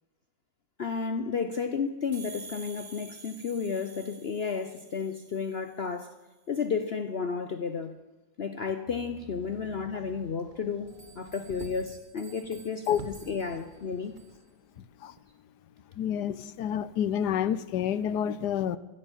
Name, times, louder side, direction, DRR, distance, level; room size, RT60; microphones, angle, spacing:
voice 1, 0.8-6.2 6.5-8.0 8.4-14.1, left 5 dB, 50° left, 8 dB, 0.7 m, -32 dB
sound 1, 2.1-5.7, right 4 dB, 50° right, 1.9 m, -48 dB
Motor vehicle (road), 8.9-12.0 12.5-12.6 12.9-14.3 15.2-15.3, right 1 dB, 30° right, 1.3 m, -48 dB
sound 2, 10.9-14.6, right 4 dB, 70° right, 3.9 m, -56 dB
voice 2, 16.0-18.8, left 9 dB, 80° left, 16 dB, 1.2 m, -28 dB
16.0 x 9.8 x 7.2 m, 1.2 s
omnidirectional pair, 1.8 m